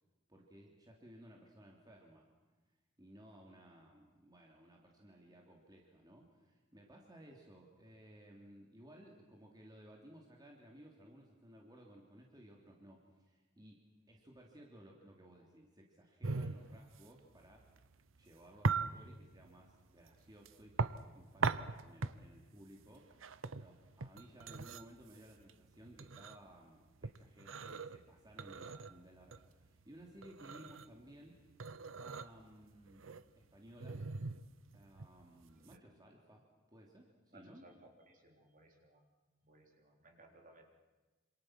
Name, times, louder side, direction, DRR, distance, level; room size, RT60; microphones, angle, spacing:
voice 1, 0.3-2.3 3.0-13.8 14.1-17.7 18.2-33.1 33.3-34.0 34.7-37.7, equal, 20° right, 0 dB, 2.9 m, -58 dB
Ceramic clank and sliding over wooden table, 16.2-35.8, right 4 dB, 70° right, 0.8 m, -41 dB
voice 2, 37.3-39.0 39.4-40.6, right 2 dB, 45° right, 2 dB, 3.9 m, -62 dB
27.0 x 27.0 x 6.3 m, 1.2 s
head